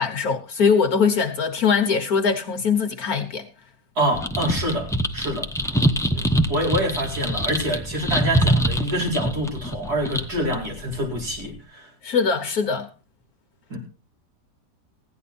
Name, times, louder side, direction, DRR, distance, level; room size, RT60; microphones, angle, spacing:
voice 1, 0.0-3.5 12.0-12.9, left 5 dB, 60° left, 1.5 m, -21 dB
voice 2, 4.0-5.5 6.1-6.2 6.5-11.9 13.7-13.8, right 1 dB, 60° right, 5.3 m, -26 dB
sound 1, 4.1-11.6, right 1 dB, 5° left, 0.7 m, -25 dB
16.0 x 11.0 x 4.2 m
omnidirectional pair, 1.9 m